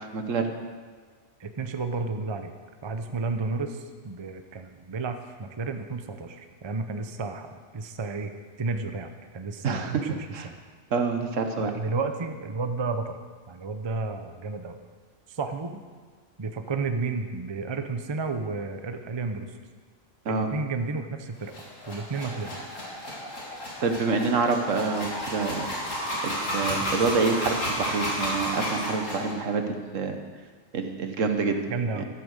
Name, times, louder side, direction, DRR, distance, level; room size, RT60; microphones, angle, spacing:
voice 1, 0.1-0.5 9.6-10.0 10.3-10.5 10.9-11.7 20.2-20.5 23.8-25.7 26.2-30.2 30.7-31.6 32.0-32.1, right 4 dB, 75° right, 6 dB, 1.5 m, -27 dB
voice 2, 1.4-2.5 2.8-8.3 8.6-10.6 11.6-13.2 13.5-14.8 15.3-15.8 16.4-19.5 20.3-21.5 21.9-22.6 31.7-32.0, right 4 dB, 30° right, 7 dB, 0.6 m, -32 dB
sound 1, 21.4-29.3, equal, 80° left, 3.3 m, -32 dB
12.0 x 8.9 x 6.5 m, 1.5 s
omnidirectional pair, 1.3 m